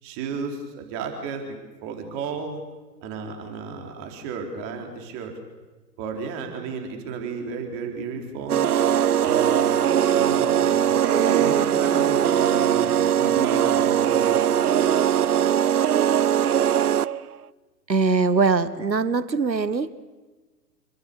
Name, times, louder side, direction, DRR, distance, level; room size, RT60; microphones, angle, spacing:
voice 1, 0.0-1.4 1.8-2.6 3.0-5.3 6.0-8.7 9.2-9.7 10.1-14.5, right 5 dB, 30° right, 3 dB, 4.3 m, -32 dB
sound 1, 8.5-17.2, right 9 dB, 65° right, 0.8 m, -20 dB
voice 2, 17.9-19.9, right 4 dB, 80° right, 16 dB, 1.5 m, -22 dB
27.5 x 23.5 x 7.0 m, 1.3 s
figure-of-eight pair, 115°, 50 cm